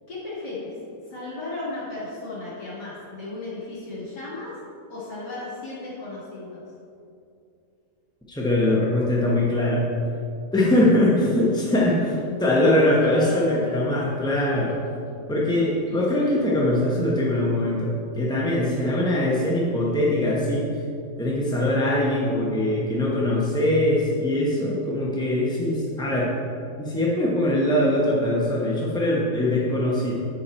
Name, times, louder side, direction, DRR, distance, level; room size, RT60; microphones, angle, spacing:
voice 1, 0.1-0.8 1.0-4.5 4.9-6.6 10.7-10.8 11.5-11.7 12.1-12.2 12.8-13.7 15.9-16.4 18.6-18.8, left 2 dB, 85° left, -11 dB, 2.5 m, -35 dB
voice 2, 8.3-9.9 10.5-12.1 12.4-14.8 15.3-20.8 21.2-26.3 26.8-30.1, left 1 dB, 5° left, -5 dB, 0.4 m, -22 dB
10.5 x 4.3 x 4.4 m, 2.6 s
omnidirectional pair, 1.8 m